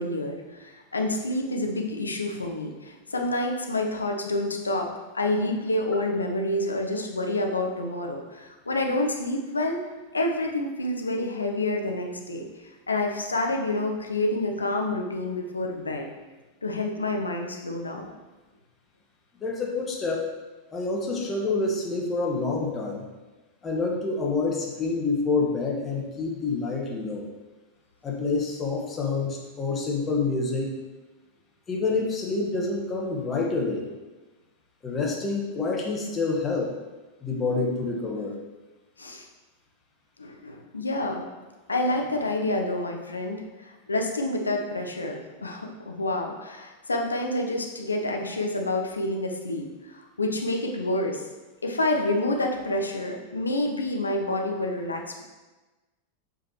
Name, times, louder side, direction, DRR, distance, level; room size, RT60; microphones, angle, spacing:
voice 1, 0.0-4.9 5.1-9.8 10.1-12.5 12.9-16.1 16.6-18.1 39.0-39.3 40.2-41.2 41.7-51.2 51.6-55.2, left 2 dB, 80° left, 2 dB, 0.8 m, -28 dB
voice 2, 19.4-20.3 20.7-23.0 23.6-27.3 28.0-30.8 31.7-33.9 34.8-36.7 37.2-38.4, left 3 dB, 20° left, -1 dB, 1.4 m, -27 dB
7.7 x 5.0 x 3.0 m, 1.2 s
figure-of-eight pair, 90°, 0 cm